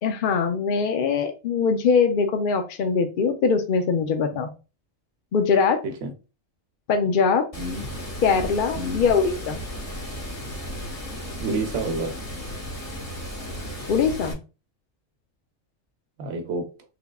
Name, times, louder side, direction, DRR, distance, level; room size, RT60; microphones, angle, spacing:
voice 1, 0.0-4.5 5.3-5.8 6.9-7.5 8.2-9.6 13.9-14.4, left 5 dB, 60° left, 0.5 m, -22 dB
Water, 7.5-14.3, equal, 30° left, 1.1 m, -34 dB
voice 2, 8.7-9.0 11.4-12.1 16.2-16.7, right 2 dB, 65° right, 1.0 m, -29 dB
3.5 x 3.4 x 2.3 m
omnidirectional pair, 1.3 m